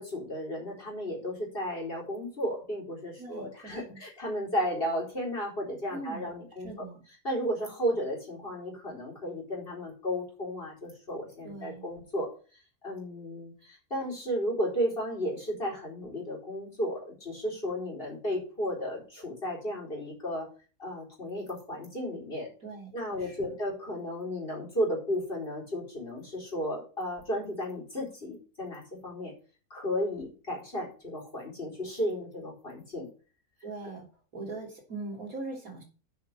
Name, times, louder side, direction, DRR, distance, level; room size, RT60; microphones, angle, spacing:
voice 1, 0.0-6.7 7.2-12.3 12.8-20.5 20.8-22.5 22.9-29.3 29.7-33.1, equal, 35° left, -2 dB, 4.5 m, -34 dB
voice 2, 3.2-4.0 5.9-6.3 6.6-7.0 11.4-11.9 22.6-23.6 33.6-34.1 34.3-35.8, right 3 dB, 60° right, 1 dB, 3.4 m, -41 dB
7.4 x 6.1 x 7.3 m, 0.36 s
omnidirectional pair, 1.7 m